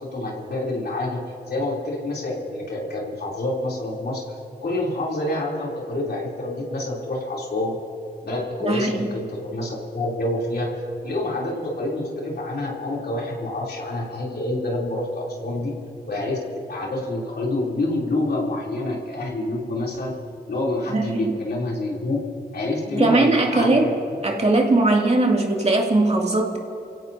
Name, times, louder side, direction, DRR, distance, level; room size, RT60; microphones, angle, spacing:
voice 1, 0.1-1.2 1.5-4.2 4.6-7.8 8.2-15.7 16.1-20.1 20.5-22.2 22.5-23.9, left 2 dB, 70° left, -3 dB, 3.3 m, -27 dB
voice 2, 8.6-9.1 20.9-21.4 22.9-23.9 24.2-26.6, right 2 dB, 40° right, 0 dB, 2.5 m, -20 dB
29.0 x 16.5 x 2.8 m, 2.8 s
cardioid pair, 45°, 17 cm